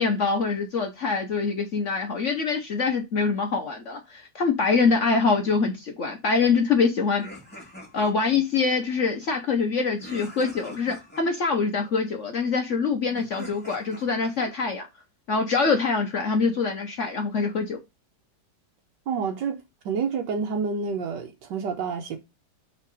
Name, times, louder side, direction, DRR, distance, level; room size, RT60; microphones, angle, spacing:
voice 1, 0.0-7.2 7.9-14.9 15.3-17.8, left 4 dB, 50° left, 1.1 m, -24 dB
sound 1, 7.2-8.4 10.0-11.2 13.1-14.4, equal, 5° left, 1.9 m, -43 dB
voice 2, 19.1-19.6 19.8-22.2, right 5 dB, 80° right, 1.5 m, -28 dB
5.7 x 3.8 x 4.8 m
omnidirectional pair, 1.9 m